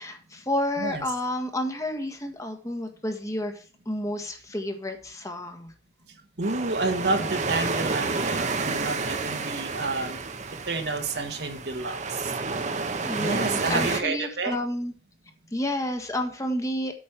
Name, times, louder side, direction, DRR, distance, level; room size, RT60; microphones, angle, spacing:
voice 1, 0.0-5.7 13.0-14.9 15.5-16.9, left 1 dB, 20° left, 5 dB, 1.5 m, -30 dB
sound 1, 6.4-14.0, right 4 dB, 45° right, 1.0 m, -30 dB
voice 2, 6.4-10.2 10.7-12.3 13.1-14.6, right 3 dB, 70° right, 4 dB, 1.6 m, -29 dB
8.7 x 5.3 x 7.1 m, 0.40 s
head